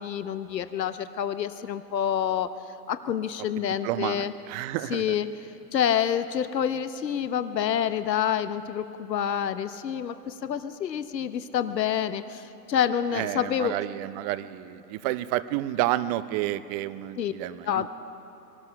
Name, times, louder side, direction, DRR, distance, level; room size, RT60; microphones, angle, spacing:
voice 1, 0.0-2.5 2.9-4.3 4.9-5.3 5.7-13.7 17.2-17.3 17.6-17.9, left 9 dB, 80° left, 11 dB, 0.9 m, -27 dB
voice 2, 3.6-5.1 13.1-17.9, right 14 dB, 25° right, 16 dB, 0.5 m, -30 dB
24.0 x 18.5 x 5.7 m, 2.9 s
figure-of-eight pair, 100°, 49 cm